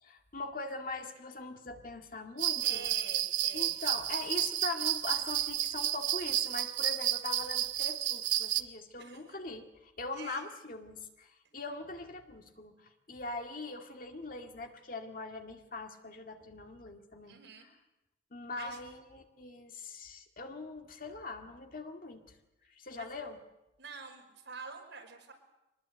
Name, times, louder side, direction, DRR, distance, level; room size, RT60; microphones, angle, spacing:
voice 1, 0.0-2.9 3.5-17.7 18.3-22.3 22.7-23.4, left 3 dB, 45° left, 4 dB, 2.0 m, -42 dB
sound 1, 2.4-8.6, right 12 dB, 90° right, 1.0 m, -31 dB
voice 2, 2.6-3.8 9.0-9.2 10.1-10.5 17.3-17.7 18.6-18.8 23.0-23.1 23.8-25.3, right 5 dB, 75° right, 1 dB, 5.7 m, -47 dB
24.0 x 20.0 x 8.2 m, 0.96 s
head